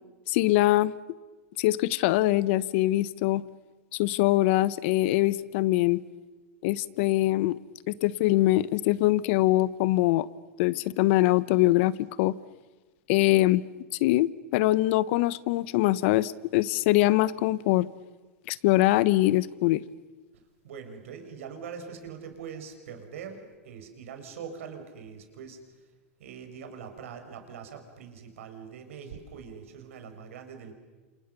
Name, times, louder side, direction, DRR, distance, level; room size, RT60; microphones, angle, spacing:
voice 1, 0.3-0.9 1.6-3.4 4.0-6.0 6.6-7.6 7.9-10.3 10.6-12.4 13.1-13.6 14.0-17.9 18.5-19.8, left 17 dB, 60° left, 18 dB, 1.1 m, -23 dB
voice 2, 20.6-25.6 26.2-30.7, right 6 dB, 80° right, 6 dB, 5.4 m, -42 dB
29.5 x 28.0 x 6.9 m, 1.3 s
hypercardioid pair, 115°, 7 cm